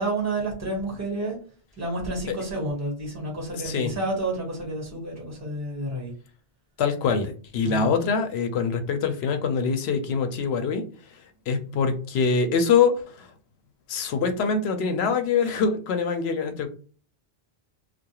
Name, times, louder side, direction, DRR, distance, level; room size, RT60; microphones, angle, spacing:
voice 1, 0.0-1.4 1.8-6.1 7.6-8.0, right 2 dB, 15° right, -2 dB, 1.2 m, -30 dB
voice 2, 6.8-10.9 11.5-13.3 13.9-16.7, left 5 dB, 85° left, 7 dB, 0.8 m, -24 dB
2.3 x 2.2 x 2.9 m, 0.40 s
omnidirectional pair, 1.0 m